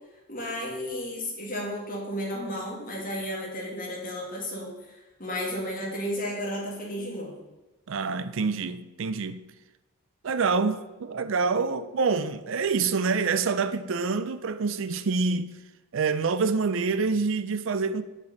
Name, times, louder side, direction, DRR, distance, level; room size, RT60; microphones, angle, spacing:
voice 1, 0.3-7.4, equal, 40° left, 2.3 m, -33 dB
voice 2, 7.9-9.4 10.2-15.5 15.9-18.0, right 4 dB, 60° right, 0.4 m, -26 dB
6.6 x 5.2 x 7.0 m
head